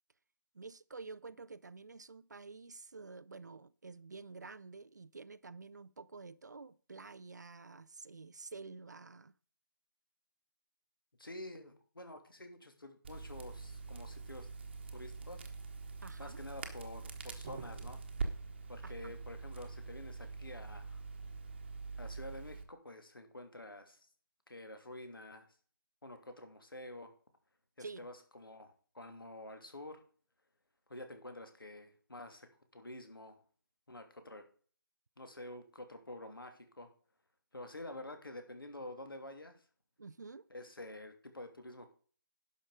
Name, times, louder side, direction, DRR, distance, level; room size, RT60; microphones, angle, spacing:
voice 1, 0.5-9.3 16.0-16.4 18.8-19.1 27.8-28.0 40.0-40.5, right 4 dB, 50° right, 0.5 m, -50 dB
voice 2, 11.2-14.5 14.9-15.4 16.2-18.0 18.7-21.0 22.0-24.0 24.5-25.5 26.0-27.1 27.8-30.0 30.9-33.4 33.9-34.5 35.2-36.9 37.5-39.6 40.5-41.9, left 1 dB, 70° left, 2.9 m, -49 dB
Crackle, 13.0-22.6, right 4 dB, 30° right, 1.2 m, -44 dB
11.0 x 6.3 x 5.0 m
figure-of-eight pair, 160°, 12 cm